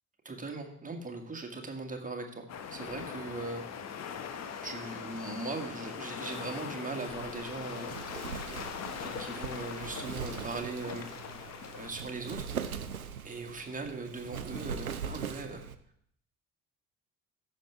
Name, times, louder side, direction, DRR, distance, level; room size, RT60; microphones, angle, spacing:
voice 1, 0.3-3.6 4.6-8.0 9.0-11.1 11.7-12.5 13.2-15.7, right 3 dB, 20° right, 3 dB, 1.8 m, -39 dB
sound 1, 2.5-11.9, left 7 dB, 40° left, 1.0 m, -41 dB
Wind, 7.1-15.8, right 7 dB, 90° right, 0.5 m, -41 dB
15.0 x 6.5 x 3.4 m, 0.66 s
figure-of-eight pair, 50°, 42 cm